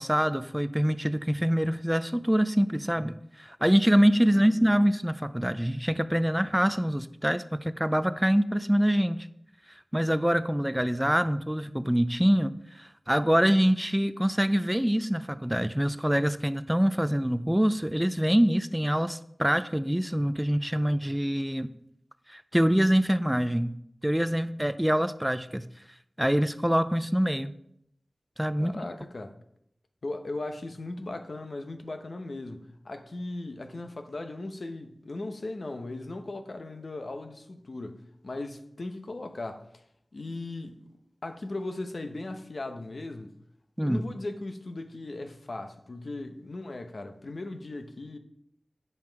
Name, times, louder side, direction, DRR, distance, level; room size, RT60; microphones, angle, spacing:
voice 1, 0.0-9.3 9.9-21.7 22.3-23.8 24.0-25.6 26.2-27.5 28.4-28.8 43.8-44.1, equal, 10° right, 0.4 m, -25 dB
voice 2, 4.3-4.7 28.6-29.3 30.0-39.8 40.1-40.8 41.2-43.4 43.8-48.2, left 2 dB, 75° left, 0.9 m, -38 dB
9.4 x 5.6 x 4.6 m
wide cardioid pair, 55°, 0 cm